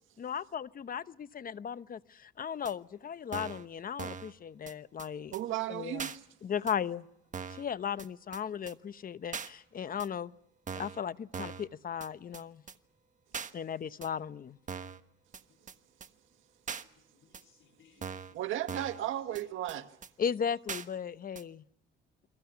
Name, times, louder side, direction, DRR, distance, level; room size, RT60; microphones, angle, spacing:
voice 1, 0.2-5.3 5.7-6.0 6.4-7.0 7.6-10.3 10.8-12.6 13.5-14.6 20.2-21.6, left 8 dB, 45° left, 0.9 m, -36 dB
sound 1, 2.6-2.7 3.3-3.6 4.0-4.3 4.7-4.8 5.0-5.1 5.3-5.4 6.0-6.2 6.7-6.8 7.3-7.6 8.0-8.1 8.3-8.4 8.7-8.8 9.3-9.5 10.0-10.1 10.7-11.0 11.3-11.7 12.0-12.1 12.3-12.4 12.7-12.8 13.3-13.5 14.0-14.1 14.7-15.0 15.3-15.4 15.7-15.8 16.0-16.1 16.7-16.8 17.3-17.4 18.0-18.3 18.7-19.0 19.3-19.4 19.7-19.8 20.0-20.1 20.7-20.8 21.3-21.4, right 6 dB, 40° right, 1.4 m, -40 dB
voice 2, 5.3-6.3 18.3-19.8, right 13 dB, 80° right, 1.8 m, -35 dB
voice 3, 6.6-6.9 10.5-10.6 15.5-15.8 16.9-18.3 18.8-19.5, left 6 dB, 70° left, 7.9 m, -65 dB
29.5 x 23.0 x 5.9 m
cardioid pair, 90°, 20 cm